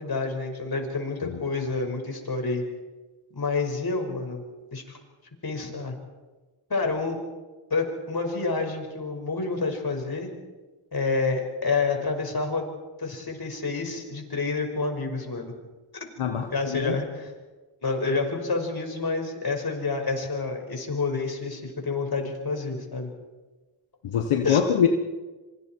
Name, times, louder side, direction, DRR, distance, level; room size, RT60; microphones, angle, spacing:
voice 1, 0.0-2.6 3.3-4.4 4.7-5.0 5.4-6.0 6.7-7.2 7.7-10.3 10.9-12.6 13.0-15.5 16.5-17.3 17.8-23.1 24.4-24.6, left 3 dB, 45° left, 3 dB, 5.7 m, -28 dB
voice 2, 16.2-17.0 24.0-24.9, left 8 dB, 85° left, 4 dB, 1.5 m, -24 dB
27.0 x 24.0 x 4.6 m, 1.2 s
cardioid pair, 50°, 50 cm